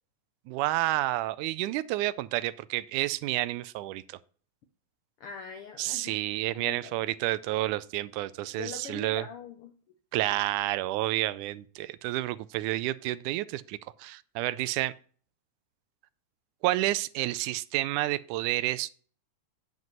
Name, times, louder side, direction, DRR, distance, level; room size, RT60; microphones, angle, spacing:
voice 1, 0.5-4.2 5.8-9.2 10.1-14.9 16.6-18.9, right 16 dB, 85° right, 2.0 m, -30 dB
voice 2, 5.2-6.1 6.5-7.0 8.5-9.7, left 6 dB, 80° left, 1.3 m, -42 dB
9.5 x 5.2 x 5.3 m
omnidirectional pair, 3.5 m